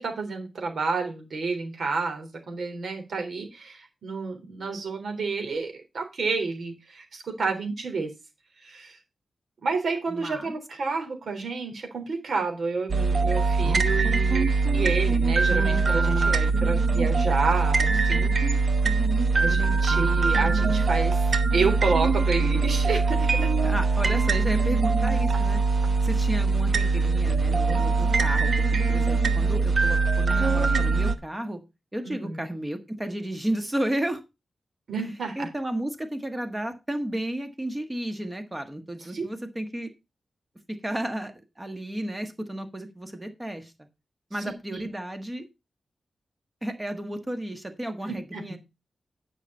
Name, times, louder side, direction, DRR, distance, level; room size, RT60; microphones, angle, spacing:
voice 1, 0.0-8.1 8.6-9.0 9.6-18.3 19.3-21.2 21.5-23.5 32.0-32.5 34.9-35.5 39.1-39.2 44.7-44.9 48.1-48.4, right 4 dB, 70° right, 4 dB, 3.5 m, -30 dB
voice 2, 10.1-10.5 23.6-25.6 26.0-28.5 28.9-31.6 31.9-34.2 35.3-39.9 40.7-43.7 44.3-45.4 46.6-48.6, right 1 dB, 15° right, 6 dB, 1.4 m, -32 dB
sound 1, 12.9-31.2, right 4 dB, 50° right, 1.0 m, -22 dB
10.5 x 5.8 x 5.4 m, 0.25 s
wide cardioid pair, 130°, 0 cm